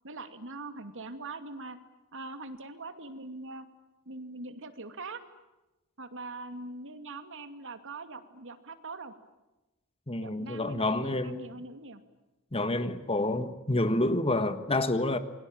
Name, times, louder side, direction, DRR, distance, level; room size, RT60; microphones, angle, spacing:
voice 1, 0.0-1.8 2.1-3.7 4.1-5.2 6.0-9.1 10.2-12.0, right 3 dB, 60° right, 2.5 m, -42 dB
voice 2, 10.1-11.5 12.5-15.2, left 2 dB, 25° left, 1.6 m, -28 dB
28.0 x 24.0 x 8.9 m
head